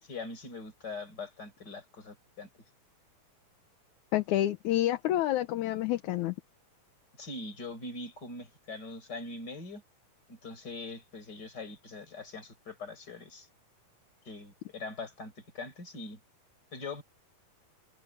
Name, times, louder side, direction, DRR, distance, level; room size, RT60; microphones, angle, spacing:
voice 1, 0.0-2.5 7.2-9.8 10.3-13.5 14.2-16.2 16.7-17.0, left 3 dB, 25° left, 4.9 m, -42 dB
voice 2, 4.1-6.3, left 13 dB, 75° left, 1.9 m, -28 dB
omnidirectional pair, 4.3 m